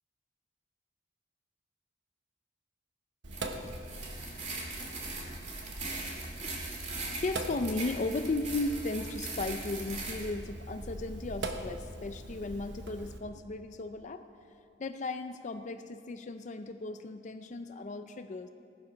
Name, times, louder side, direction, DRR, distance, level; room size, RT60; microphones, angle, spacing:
Sink (filling or washing), 3.2-13.2, right 1 dB, 70° right, 1.1 m, -42 dB
sound 1, 3.3-10.3, right 3 dB, 40° right, 2.2 m, -41 dB
voice 1, 6.2-14.3 14.8-18.5, left 2 dB, 40° left, 8 dB, 0.5 m, -36 dB
16.0 x 11.5 x 5.1 m, 2.5 s
head